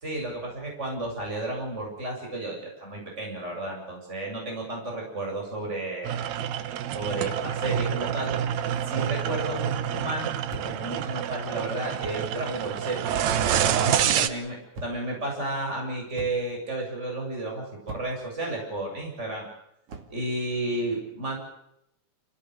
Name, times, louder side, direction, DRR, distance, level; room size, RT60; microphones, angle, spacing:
voice 1, 0.0-6.2 6.9-8.4 8.8-10.3 10.6-13.1 13.8-14.6 14.8-19.5 20.1-21.4, right 2 dB, 20° right, 0 dB, 7.9 m, -32 dB
sound 1, 6.0-14.3, right 9 dB, 70° right, 2.3 m, -27 dB
sound 2, 10.5-10.9 12.0-12.3 13.3-13.7 14.7-15.2 16.2-16.6 17.9-18.3 19.9-20.2, right 2 dB, 50° right, 3.3 m, -41 dB
29.0 x 17.0 x 8.0 m, 0.80 s
omnidirectional pair, 3.5 m